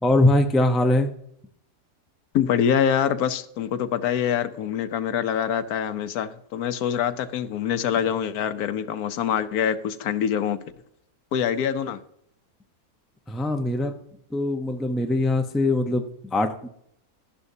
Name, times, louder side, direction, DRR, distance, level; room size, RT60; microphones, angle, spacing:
voice 1, 0.0-1.1 13.3-14.0 14.3-16.7, left 2 dB, ahead, 5 dB, 0.3 m, -22 dB
voice 2, 2.3-10.6 11.3-12.0, left 8 dB, 80° left, 12 dB, 1.2 m, -25 dB
11.5 x 11.5 x 2.7 m, 0.72 s
omnidirectional pair, 1.6 m